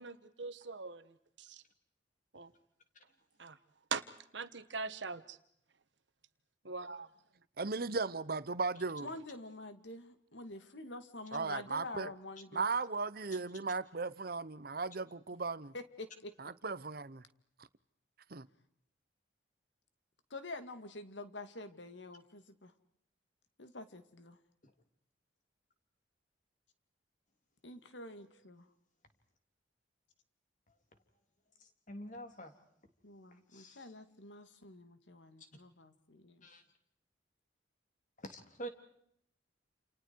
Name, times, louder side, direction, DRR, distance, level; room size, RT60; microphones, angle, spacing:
voice 1, 0.0-1.6 2.3-2.5 3.4-3.6 3.9-4.0 4.3-5.4 6.6-7.1, right 4 dB, 75° right, 1.5 m, -41 dB
voice 2, 7.6-9.1 11.3-12.1 12.5-15.7 16.4-17.2 18.3-18.5, right 4 dB, 55° right, 1.0 m, -36 dB
voice 3, 9.0-12.7 15.7-16.3 20.3-22.7 23.6-24.4 27.6-28.7 33.0-36.5, left 2 dB, 80° left, 2.3 m, -47 dB
voice 4, 31.9-32.5 33.5-33.8 36.4-36.6 38.2-38.7, right 1 dB, 45° left, 3.4 m, -46 dB
29.5 x 29.0 x 4.7 m
head